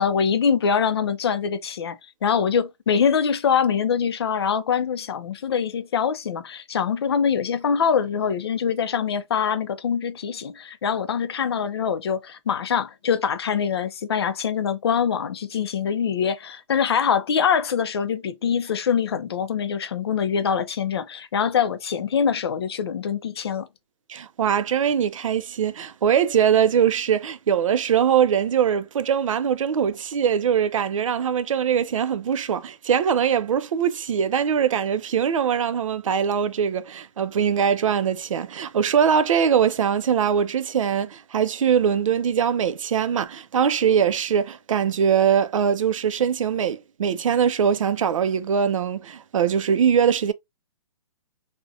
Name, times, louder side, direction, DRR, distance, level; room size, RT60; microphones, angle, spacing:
voice 1, 0.0-23.7, left 7 dB, 50° left, 0.4 m, -24 dB
voice 2, 24.1-50.3, right 8 dB, 75° right, 0.4 m, -22 dB
2.4 x 2.1 x 2.6 m
hypercardioid pair, 175°, 17 cm